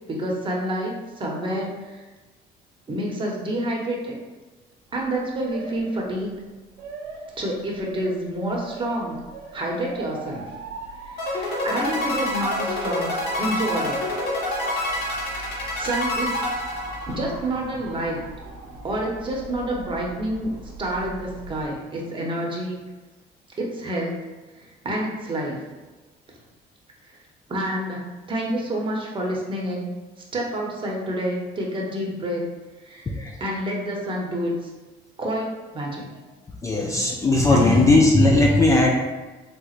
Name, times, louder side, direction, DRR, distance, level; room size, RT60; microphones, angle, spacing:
voice 1, 0.1-2.0 2.9-4.2 4.9-6.3 7.4-9.2 9.5-10.5 11.0-13.1 13.4-14.0 14.9-15.3 15.7-16.3 17.1-18.2 18.8-22.8 23.6-24.3 24.8-25.6 27.5-29.9 30.3-32.5 32.8-33.1 33.4-34.7 35.2-36.1 37.5-37.7, right 1 dB, 30° right, -2 dB, 0.8 m, -28 dB
Motor vehicle (road) / Siren, 4.9-21.7, right 3 dB, 90° right, 0.5 m, -41 dB
sound 1, 11.2-17.5, left 1 dB, 80° left, 0.9 m, -27 dB
voice 2, 33.1-33.4 36.6-39.0, left 2 dB, 20° left, -1 dB, 0.3 m, -17 dB
3.4 x 2.9 x 2.4 m, 1.2 s
cardioid pair, 110°, 17 cm